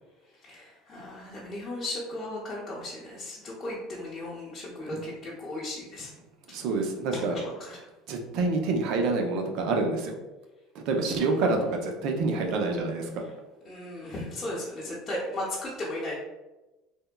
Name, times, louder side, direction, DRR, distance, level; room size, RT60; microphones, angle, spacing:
voice 1, 0.4-6.1 6.5-6.6 7.1-7.8 11.0-11.4 13.6-16.1, left 1 dB, 30° left, -8 dB, 0.7 m, -36 dB
voice 2, 6.5-7.4 8.1-10.1 10.7-13.3, right 3 dB, 65° right, 3 dB, 0.5 m, -27 dB
3.4 x 2.0 x 2.2 m, 1.1 s
supercardioid pair, 90°, 0 cm